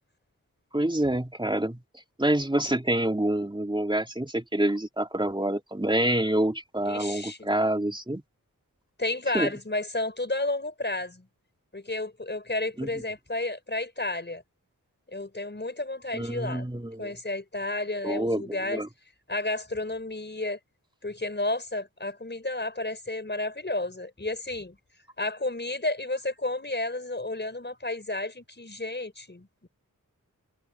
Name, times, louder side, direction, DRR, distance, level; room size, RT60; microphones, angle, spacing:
voice 1, 0.7-1.8 2.2-8.2 9.3-9.5 12.8-12.9 16.1-17.1 18.0-18.9, right 1 dB, 15° right, 3.0 m, -27 dB
voice 2, 6.9-7.4 9.0-11.3 11.7-14.4 15.1-16.7 17.0-18.8 19.3-20.6 21.0-24.8 25.2-29.7, left 2 dB, 30° left, 5.3 m, -31 dB
wide cardioid pair, 75°, 34 cm